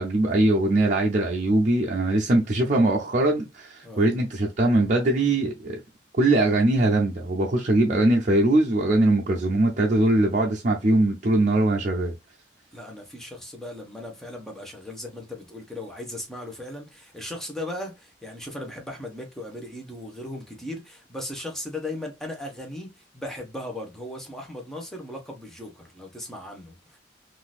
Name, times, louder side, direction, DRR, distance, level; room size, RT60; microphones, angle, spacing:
voice 1, 0.0-5.8 6.2-12.2, right 2 dB, 45° right, 0.6 m, -21 dB
voice 2, 12.7-27.0, left 1 dB, ahead, 1.0 m, -37 dB
3.8 x 2.6 x 2.4 m
head